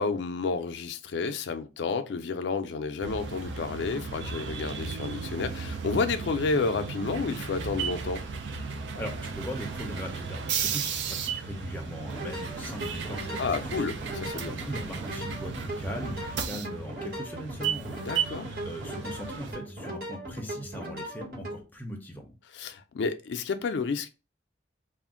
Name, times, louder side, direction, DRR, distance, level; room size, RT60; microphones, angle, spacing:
voice 1, 0.0-8.2 13.4-14.5 18.1-18.5 22.5-24.1, left 4 dB, 70° left, 0.4 m, -30 dB
sound 1, 3.0-19.5, right 6 dB, 70° right, 0.4 m, -35 dB
voice 2, 9.0-13.9 14.3-17.9 18.6-22.4, equal, 10° left, 0.5 m, -40 dB
sound 2, 12.0-21.6, right 1 dB, 55° right, 1.2 m, -39 dB
2.4 x 2.1 x 3.6 m
head